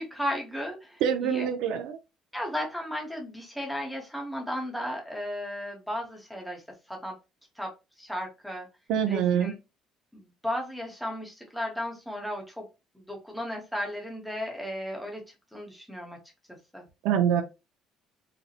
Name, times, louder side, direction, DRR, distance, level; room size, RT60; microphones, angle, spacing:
voice 1, 0.0-1.5 2.3-6.6 6.9-7.1 7.6-7.7 8.0-8.7 9.1-9.5 10.1-12.7 12.9-15.2 15.5-16.2 16.7-16.8, equal, ahead, 0 dB, 0.7 m, -35 dB
voice 2, 1.0-2.0 8.9-9.5 17.0-17.4, right 8 dB, 85° right, 4 dB, 0.4 m, -25 dB
3.9 x 2.0 x 2.7 m, 0.27 s
cardioid pair, 165°, 0 cm